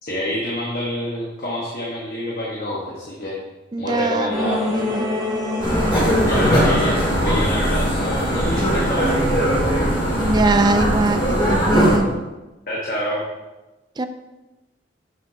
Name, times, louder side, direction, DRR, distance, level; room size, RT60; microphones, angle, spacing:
voice 1, 0.0-3.4 3.8-4.6 6.2-9.4 12.7-13.2, left 1 dB, 50° left, -4 dB, 1.2 m, -27 dB
voice 2, 3.7-5.1 5.7-6.3 10.2-12.1 14.0-14.1, right 2 dB, 25° right, 9 dB, 0.4 m, -22 dB
sound 1, 4.3-9.6, left 2 dB, 10° right, 2.3 m, -28 dB
sound 2, 5.6-12.0, equal, 25° left, 1.9 m, -20 dB
7.7 x 6.1 x 2.7 m, 1.1 s
head